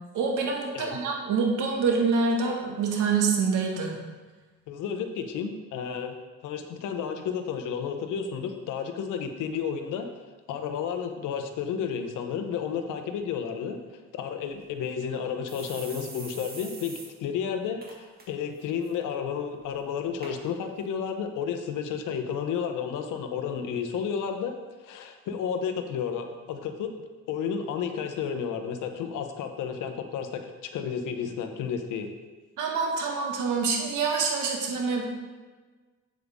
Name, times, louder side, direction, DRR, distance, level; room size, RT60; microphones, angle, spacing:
voice 1, 0.1-4.0 32.6-35.0, right 4 dB, 85° right, 0 dB, 2.0 m, -26 dB
voice 2, 4.7-6.2 6.4-10.1 10.5-13.8 14.1-24.5 24.8-26.9 27.3-32.1, left 7 dB, 90° left, 6 dB, 1.0 m, -32 dB
sound 1, 14.5-14.6 15.0-15.1 15.5-17.1 17.4-17.5 17.8-18.2 18.6-18.9 19.6-19.7 20.2-20.3 21.1-21.2, right 3 dB, 30° right, 2.2 m, -43 dB
8.5 x 7.8 x 3.7 m, 1.4 s
cardioid pair, 90°, 30 cm